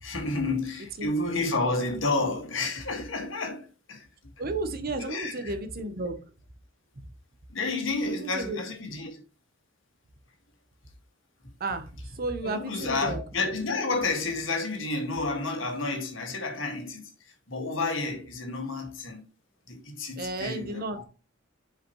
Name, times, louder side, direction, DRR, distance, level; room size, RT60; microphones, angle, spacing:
voice 1, 0.0-4.1 4.9-5.5 7.5-9.2 12.4-19.2 19.7-21.0, left 3 dB, 70° left, 2.0 m, -30 dB
voice 2, 4.4-6.2 8.1-8.6 11.6-13.2 20.2-21.0, right 2 dB, 50° right, 1.0 m, -33 dB
7.6 x 4.9 x 3.1 m
head